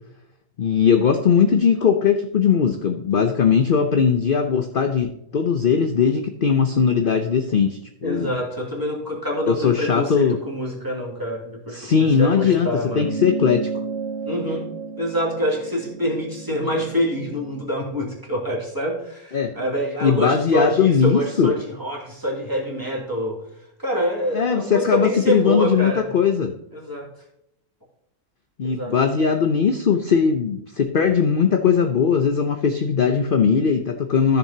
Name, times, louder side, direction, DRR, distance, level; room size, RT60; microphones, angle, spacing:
voice 1, 0.6-8.3 9.5-10.4 11.7-12.7 12.9-13.7 19.3-19.5 20.0-21.5 24.3-26.5 28.6-34.4, left 6 dB, 45° left, 6 dB, 0.8 m, -19 dB
voice 2, 8.0-13.1 14.3-14.7 15.0-23.4 23.8-26.1 26.7-27.1 28.6-28.9, equal, 15° right, -3 dB, 2.7 m, -26 dB
sound 1, 12.9-17.7, right 4 dB, 45° right, 1.5 m, -32 dB
14.0 x 6.9 x 2.8 m, 0.81 s
omnidirectional pair, 1.6 m